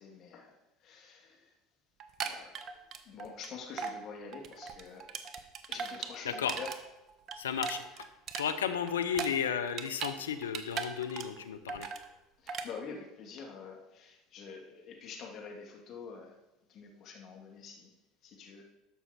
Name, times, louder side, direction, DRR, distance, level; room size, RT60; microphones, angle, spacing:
voice 1, 0.0-1.5 2.2-2.6 3.0-5.1 5.7-6.7 12.1-16.4 16.7-17.9 18.2-18.6, left 5 dB, 55° left, 1 dB, 2.3 m, -47 dB
sound 1, 2.0-3.5 3.8-4.0 4.3-6.8 7.1-10.2 10.4-11.4 11.7-12.0 12.5-12.7, right 6 dB, 50° right, 1.0 m, -38 dB
voice 2, 7.4-8.1 8.4-11.9, left 8 dB, 90° left, 9 dB, 0.7 m, -33 dB
12.5 x 5.7 x 4.3 m, 0.96 s
hypercardioid pair, 75°, 0 cm